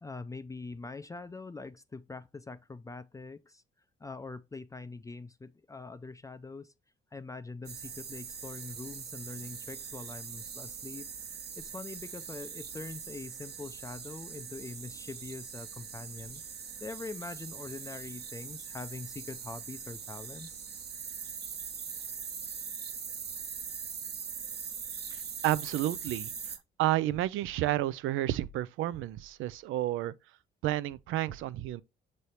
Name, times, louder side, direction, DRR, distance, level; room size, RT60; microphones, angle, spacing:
voice 1, 0.0-3.6 4.0-6.7 7.1-20.7, left 3 dB, 15° left, 0.4 m, -43 dB
sound 1, 7.6-26.6, right 6 dB, 55° right, 1.1 m, -42 dB
voice 2, 25.4-26.3 26.8-30.1 30.6-31.8, right 14 dB, 85° right, 0.4 m, -30 dB
6.9 x 3.2 x 4.2 m
cardioid pair, 90°, 20 cm